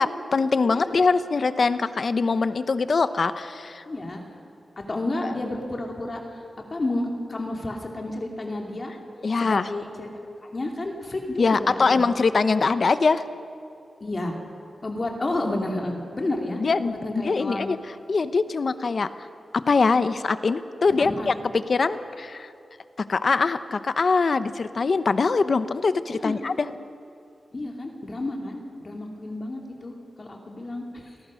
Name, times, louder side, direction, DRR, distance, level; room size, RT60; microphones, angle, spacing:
voice 1, 0.0-3.8 5.2-5.3 9.2-9.7 11.4-13.2 16.6-16.9 17.2-17.8 18.1-19.1 19.5-21.3 21.7-22.5 23.1-26.7, left 4 dB, 55° left, 12 dB, 0.9 m, -23 dB
voice 2, 3.9-4.2 4.9-6.2 6.7-8.9 9.4-10.1 10.5-12.0 14.0-14.4 14.8-17.7 20.9-21.3 26.2-26.4 27.5-31.2, left 2 dB, 35° left, 1 dB, 2.7 m, -31 dB
28.5 x 18.5 x 6.4 m, 2.7 s
wide cardioid pair, 120°, 0 cm